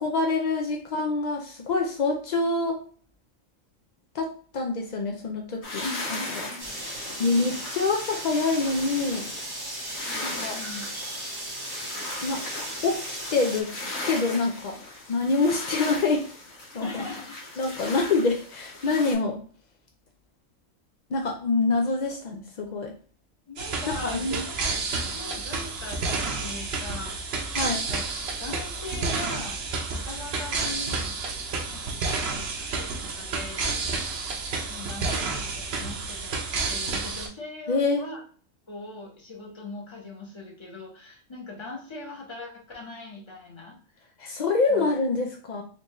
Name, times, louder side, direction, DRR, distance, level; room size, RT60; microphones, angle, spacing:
voice 1, 0.0-2.8 4.1-5.8 6.1-6.4 7.2-9.3 10.2-10.6 12.2-12.4 12.8-13.7 14.0-14.8 15.1-16.3 16.7-17.0 17.6-19.4 21.1-22.9 23.9-24.4 27.5-27.8 37.7-38.0 44.2-45.6, left 3 dB, 70° left, 2 dB, 0.4 m, -26 dB
sound 1, 5.6-19.1, left 2 dB, 85° left, 1.6 m, -38 dB
voice 2, 5.8-6.8 10.0-10.9 16.8-17.4 23.5-24.8 25.1-26.0 26.4-28.1 28.4-31.1 31.7-33.7 34.6-38.2 38.7-44.1 44.7-45.1, left 3 dB, 25° left, -1 dB, 0.9 m, -40 dB
sound 2, 6.6-13.6, right 1 dB, 20° right, 0.8 m, -36 dB
sound 3, 23.6-37.3, right 4 dB, 60° right, 0.9 m, -30 dB
4.5 x 2.6 x 3.0 m, 0.43 s
omnidirectional pair, 1.4 m